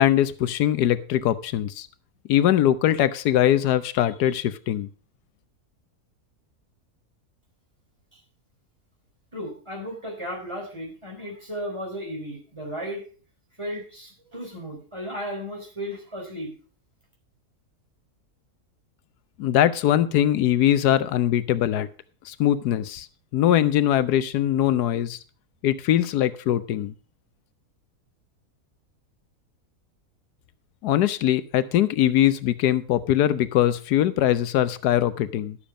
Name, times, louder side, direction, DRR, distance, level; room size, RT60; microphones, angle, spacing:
voice 1, 0.0-1.9 2.3-4.9 19.4-21.9 22.3-23.1 23.3-25.2 25.6-26.9 30.8-35.6, left 11 dB, 85° left, 14 dB, 1.2 m, -21 dB
voice 2, 9.3-13.0 13.6-16.5, equal, 15° right, 0 dB, 4.0 m, -34 dB
11.5 x 7.1 x 4.9 m, 0.38 s
omnidirectional pair, 1.7 m